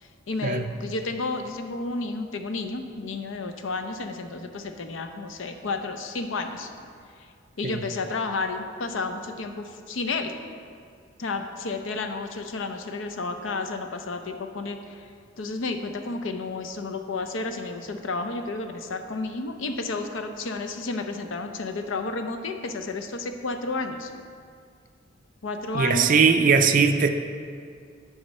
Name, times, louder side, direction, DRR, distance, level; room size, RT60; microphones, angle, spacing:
voice 1, 0.0-6.7 7.6-10.3 11.2-15.1 15.4-24.1 25.4-26.1, left 3 dB, 70° left, 6 dB, 0.6 m, -31 dB
voice 2, 25.7-27.1, right 5 dB, 45° right, 6 dB, 0.4 m, -20 dB
9.6 x 5.0 x 4.1 m, 2.2 s
head